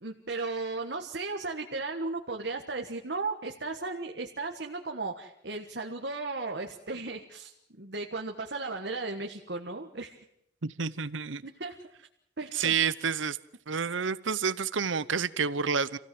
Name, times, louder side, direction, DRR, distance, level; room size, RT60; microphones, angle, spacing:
voice 1, 0.0-10.2 11.4-11.7 12.4-12.7, right 3 dB, 60° right, 1.5 m, -35 dB
voice 2, 10.6-11.4 12.5-13.4 13.7-16.0, right 6 dB, 80° right, 0.9 m, -29 dB
27.0 x 16.5 x 7.7 m
head